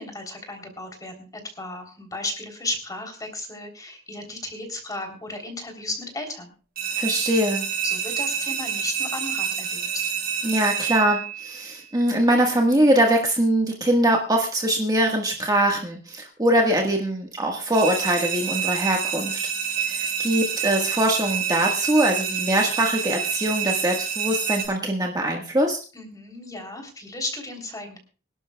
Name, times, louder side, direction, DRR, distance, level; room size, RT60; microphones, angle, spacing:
voice 1, 0.0-6.5 7.8-10.1 25.9-28.0, left 2 dB, 20° left, 3 dB, 3.3 m, -34 dB
sound 1, 6.8-11.6 17.7-24.7, right 7 dB, 50° right, 4.9 m, -28 dB
voice 2, 7.0-7.6 10.4-19.3 19.9-25.8, right 1 dB, 20° right, 1 dB, 1.5 m, -22 dB
25.5 x 11.5 x 2.3 m, 0.36 s
head